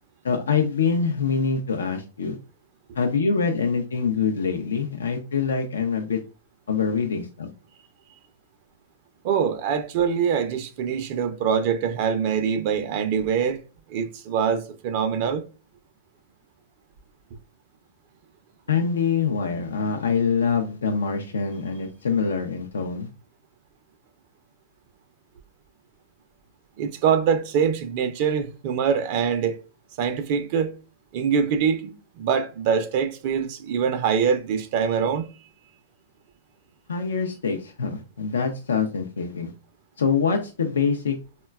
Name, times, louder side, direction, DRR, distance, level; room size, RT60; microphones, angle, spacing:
voice 1, 0.2-2.4 3.0-6.2 6.7-7.5 18.7-23.1 36.9-39.5 40.0-41.2, left 5 dB, 90° left, 0.4 m, -24 dB
voice 2, 9.2-13.6 13.9-15.4 26.8-29.6 30.0-30.7 31.1-35.2, right 7 dB, 50° right, 0.4 m, -24 dB
3.9 x 2.2 x 2.2 m
hypercardioid pair, 125°, 0 cm